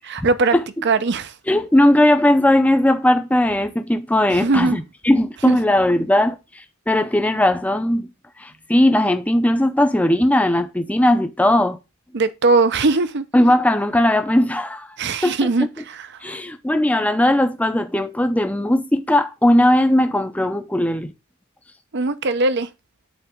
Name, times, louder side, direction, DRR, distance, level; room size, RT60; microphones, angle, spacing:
voice 1, 0.1-0.5 0.8-1.3 4.3-4.8 5.5-5.6 12.1-13.2 15.0-16.4 21.9-22.7, right 3 dB, 55° right, 0.7 m, -20 dB
voice 2, 1.5-6.4 6.9-8.1 8.4-11.8 13.3-14.9 15.2-15.4 16.2-21.1, left 1 dB, 5° left, 0.6 m, -18 dB
9.2 x 4.1 x 3.6 m
head